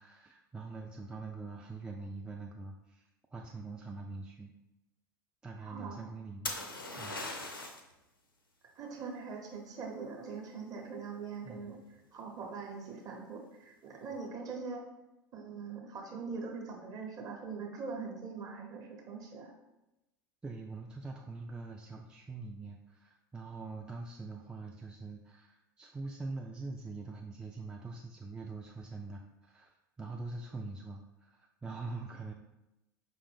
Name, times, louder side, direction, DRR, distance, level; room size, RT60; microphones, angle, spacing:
voice 1, 0.0-4.5 5.4-7.2 11.4-11.8 20.4-32.3, right 3 dB, 5° right, 0 dB, 0.3 m, -44 dB
voice 2, 5.6-6.0 8.7-11.8 12.1-14.8 15.3-19.5, right 5 dB, 35° right, 0 dB, 1.0 m, -42 dB
sound 1, 6.5-7.9 11.6-12.0, left 2 dB, 80° left, 0.6 m, -39 dB
5.0 x 2.5 x 3.4 m, 0.96 s
figure-of-eight pair, 80°, 11 cm